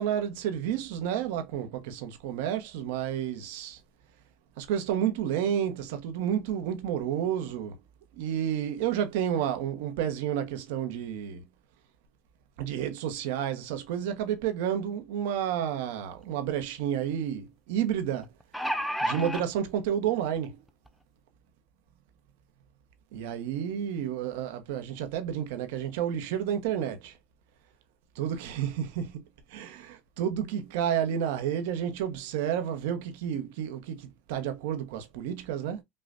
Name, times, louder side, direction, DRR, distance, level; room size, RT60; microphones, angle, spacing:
voice 1, 0.0-3.8 4.6-7.8 8.1-11.5 12.6-18.3 19.0-20.6 23.1-27.2 28.1-29.2 29.5-35.8, right 9 dB, 75° right, 1.1 m, -30 dB
sound 1, 16.1-16.2 16.5-16.6 18.2-19.4 20.4-20.5 20.9-21.0, equal, ahead, 0.5 m, -30 dB
5.6 x 2.5 x 2.5 m
supercardioid pair, 115°, 0 cm